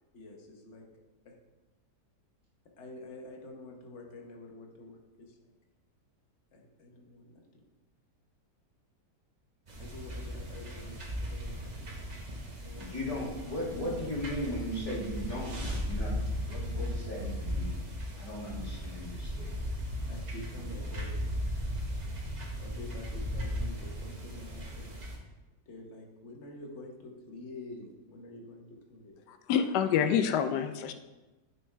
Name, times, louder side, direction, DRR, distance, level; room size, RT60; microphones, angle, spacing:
voice 1, 0.1-0.8 1.2-1.3 2.8-5.5 6.5-7.6 9.8-11.9 12.5-13.0 20.1-21.3 22.6-25.0 25.7-29.3 29.9-30.8, left 2 dB, 50° left, 1 dB, 1.2 m, -47 dB
sound 1, 9.7-25.2, equal, 35° right, 0.8 m, -37 dB
voice 2, 12.8-17.8 18.2-19.5, left 1 dB, 20° left, -7 dB, 2.2 m, -37 dB
voice 3, 29.3-30.9, left 8 dB, 80° left, 9 dB, 1.2 m, -27 dB
9.0 x 4.5 x 3.3 m, 1.1 s
omnidirectional pair, 1.8 m